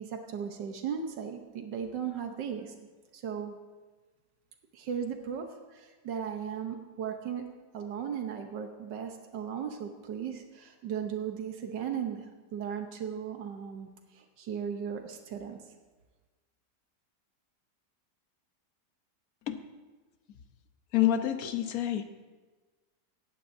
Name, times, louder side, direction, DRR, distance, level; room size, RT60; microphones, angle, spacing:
voice 1, 0.0-2.7 3.1-3.6 4.7-7.4 7.7-15.6, right 7 dB, 85° right, 5 dB, 1.6 m, -37 dB
voice 2, 20.9-22.1, left 12 dB, 60° left, 8 dB, 1.2 m, -27 dB
18.0 x 14.5 x 2.7 m, 1.3 s
omnidirectional pair, 1.8 m